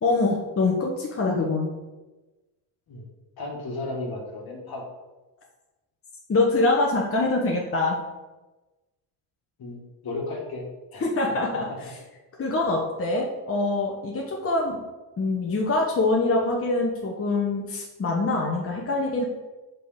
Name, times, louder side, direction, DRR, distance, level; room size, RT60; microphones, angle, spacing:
voice 1, 0.0-1.7 6.3-8.0 11.0-11.7 12.4-14.8 15.2-19.3, left 2 dB, 30° left, -1 dB, 1.2 m, -24 dB
voice 2, 3.4-4.9 9.6-10.7 10.9-11.0 11.7-11.8, left 2 dB, 50° left, 0 dB, 1.9 m, -34 dB
5.1 x 4.3 x 5.1 m, 1.1 s
supercardioid pair, 75°, 48 cm